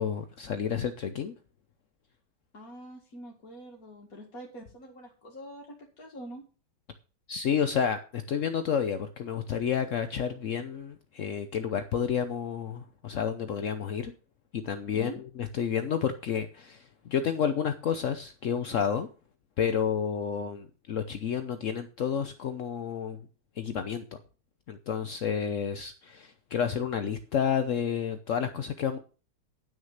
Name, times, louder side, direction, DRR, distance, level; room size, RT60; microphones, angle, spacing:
voice 1, 0.0-1.3 7.3-14.1 14.5-15.1 15.4-19.1 19.6-23.3 23.6-24.0 24.7-29.0, left 7 dB, 70° left, 9 dB, 0.7 m, -30 dB
voice 2, 2.5-6.4 14.9-15.2, equal, 45° left, -1 dB, 2.3 m, -45 dB
11.0 x 6.5 x 6.5 m, 0.36 s
omnidirectional pair, 2.3 m